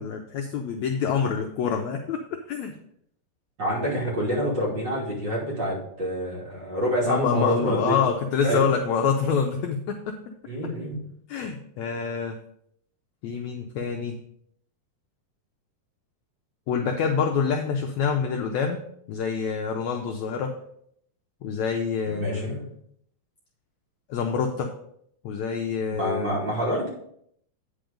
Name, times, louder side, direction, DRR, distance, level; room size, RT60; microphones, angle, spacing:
voice 1, 0.0-2.7 7.0-10.0 11.3-12.4 13.2-14.1 16.7-18.8 19.1-20.5 21.4-22.6 24.1-24.7 25.2-26.4, left 6 dB, 75° left, 3 dB, 1.7 m, -26 dB
voice 2, 3.6-8.0 8.4-8.7 10.5-11.0 22.0-22.6 26.0-26.9, equal, 35° right, -5 dB, 3.2 m, -27 dB
9.0 x 5.4 x 5.1 m, 0.69 s
omnidirectional pair, 3.9 m